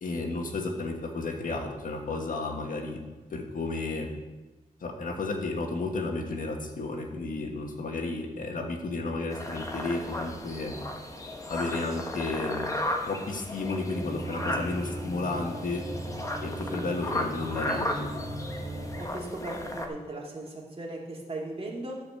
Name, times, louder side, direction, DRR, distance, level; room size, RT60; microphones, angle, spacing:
voice 1, 0.0-3.0 3.3-4.1 4.8-10.8 11.5-12.7 13.1-15.8 16.4-18.1, left 3 dB, 65° left, 3 dB, 1.6 m, -32 dB
sound 1, 9.3-19.9, left 1 dB, 20° left, 1.2 m, -35 dB
sound 2, 13.9-19.0, right 1 dB, 70° right, 1.7 m, -38 dB
voice 2, 19.0-22.0, right 2 dB, 40° right, -2 dB, 2.4 m, -37 dB
12.0 x 5.0 x 6.9 m, 1.2 s
wide cardioid pair, 100°, 15 cm